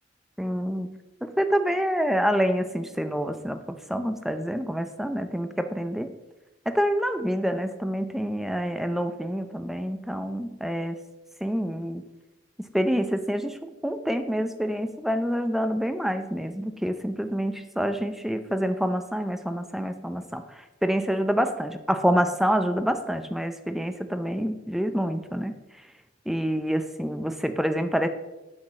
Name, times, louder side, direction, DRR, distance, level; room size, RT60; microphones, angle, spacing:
voice 1, 0.4-6.2 6.7-11.0 11.4-12.0 12.6-25.6 26.3-28.1, equal, ahead, 9 dB, 0.5 m, -27 dB
8.8 x 6.0 x 5.6 m, 1.0 s
head